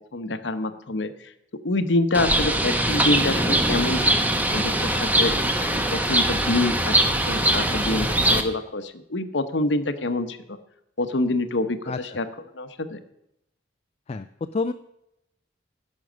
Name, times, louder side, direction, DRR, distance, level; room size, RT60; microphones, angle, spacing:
voice 1, 0.1-1.1 1.6-5.3 5.9-10.6 11.0-12.3 12.5-13.0, left 2 dB, 75° left, 10 dB, 0.9 m, -26 dB
Bird, 2.1-8.4, right 1 dB, 10° right, 1.0 m, -22 dB
voice 2, 6.5-6.8 11.9-12.2 14.1-14.3 14.5-14.7, left 3 dB, 35° left, 9 dB, 0.4 m, -29 dB
15.5 x 6.4 x 6.2 m, 0.83 s
head